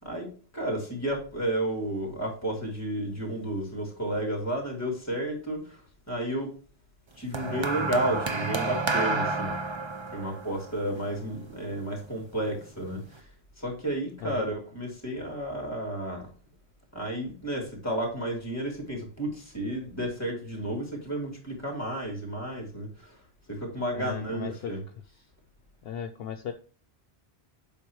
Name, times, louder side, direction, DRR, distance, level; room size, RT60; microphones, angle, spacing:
voice 1, 0.0-6.5 7.1-9.6 10.1-13.3 13.6-16.3 16.9-23.2 23.5-24.8, right 1 dB, 15° left, 3.2 m, -32 dB
sound 1, 7.3-11.8 12.7-12.9, right 3 dB, 30° right, 0.6 m, -30 dB
voice 2, 14.2-14.5 23.9-24.7 25.8-26.5, left 8 dB, 70° left, 0.9 m, -36 dB
8.2 x 5.5 x 3.0 m
omnidirectional pair, 1.1 m